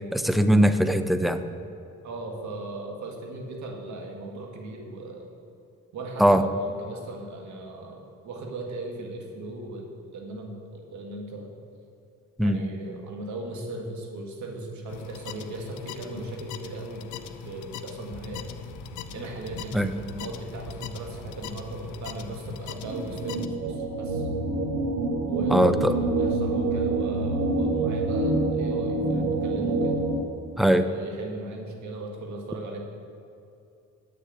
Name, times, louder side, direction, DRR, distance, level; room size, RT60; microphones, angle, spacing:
voice 1, 0.1-1.4 6.2-6.4 12.4-12.6 19.7-19.9 25.5-25.9 30.6-30.9, equal, ahead, 10 dB, 0.5 m, -20 dB
voice 2, 2.0-5.3 5.9-9.9 10.1-11.5 12.4-18.4 19.1-24.3 25.3-30.0 30.7-32.8, right 2 dB, 70° right, 1 dB, 1.9 m, -37 dB
sound 1, 14.9-23.5, left 10 dB, 75° left, 0.6 m, -41 dB
sound 2, 18.1-25.0 25.4-26.3, right 1 dB, 50° right, 2.7 m, -43 dB
sound 3, 22.9-30.2, right 2 dB, 85° right, 1.5 m, -26 dB
8.2 x 6.7 x 8.5 m, 2.7 s
cardioid pair, 90°, 30 cm